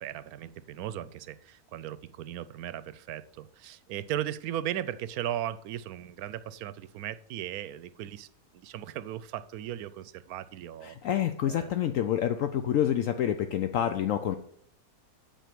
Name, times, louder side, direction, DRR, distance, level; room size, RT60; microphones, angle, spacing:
voice 1, 0.0-8.3 8.5-11.0 11.5-11.7, right 11 dB, 75° right, 15 dB, 1.0 m, -37 dB
voice 2, 10.8-14.4, left 10 dB, 70° left, 8 dB, 0.9 m, -28 dB
9.2 x 4.4 x 7.5 m, 0.66 s
omnidirectional pair, 1.6 m